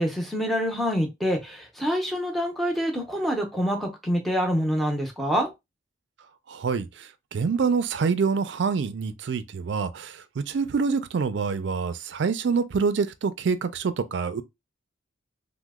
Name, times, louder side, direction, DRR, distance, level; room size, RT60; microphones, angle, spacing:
voice 1, 0.0-5.5, equal, ahead, 0.6 m, -26 dB
voice 2, 6.5-14.4, right 5 dB, 70° right, 0.4 m, -26 dB
2.9 x 2.1 x 3.5 m
head